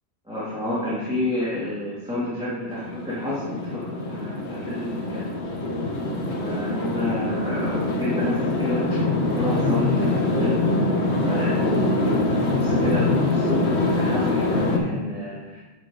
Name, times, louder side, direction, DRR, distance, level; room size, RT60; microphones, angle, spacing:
voice 1, 0.3-5.3 6.4-10.9 11.2-11.8 12.4-15.6, left 1 dB, 5° right, -11 dB, 2.1 m, -30 dB
sound 1, 2.7-14.8, left 2 dB, 80° left, 1.4 m, -24 dB
8.7 x 4.3 x 4.8 m, 1.3 s
omnidirectional pair, 1.1 m